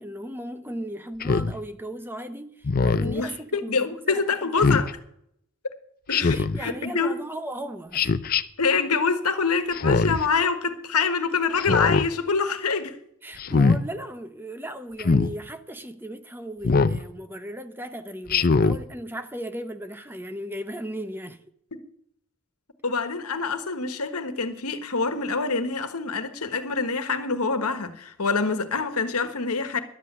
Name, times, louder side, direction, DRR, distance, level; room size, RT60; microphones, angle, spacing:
voice 1, 0.0-4.6 6.3-8.1 13.2-21.4, right 1 dB, 10° right, 0.8 m, -36 dB
Speech synthesizer, 1.2-1.5 2.6-3.2 4.6-4.9 6.1-6.6 7.9-8.4 9.7-10.3 11.6-12.1 13.4-13.8 15.0-15.3 16.6-17.0 18.3-18.8, left 4 dB, 40° left, 0.6 m, -21 dB
voice 2, 3.0-4.9 6.1-7.1 8.6-13.0 22.8-29.8, left 4 dB, 90° left, 1.4 m, -26 dB
11.5 x 8.2 x 9.4 m
head